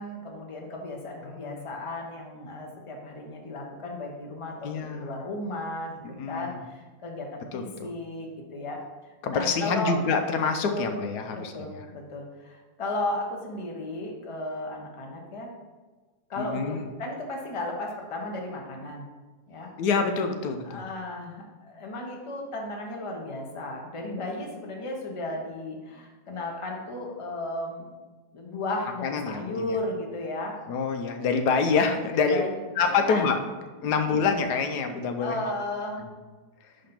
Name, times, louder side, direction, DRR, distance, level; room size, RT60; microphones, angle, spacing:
voice 1, 0.0-8.8 9.3-9.9 10.7-10.9 11.3-15.5 16.3-19.1 19.5-19.7 20.6-27.9 28.3-30.5 32.1-32.6 32.9-33.2 35.2-36.0, left 2 dB, 25° left, 0 dB, 0.7 m, -34 dB
voice 2, 1.2-1.7 4.6-5.1 6.0-6.6 7.5-7.9 9.2-11.8 16.4-16.8 19.8-20.9 29.0-29.8 30.7-32.4 32.8-33.4 33.8-35.5 36.0-36.1, left 5 dB, 90° left, 6 dB, 1.2 m, -27 dB
5.2 x 3.9 x 5.8 m, 1.3 s
omnidirectional pair, 1.7 m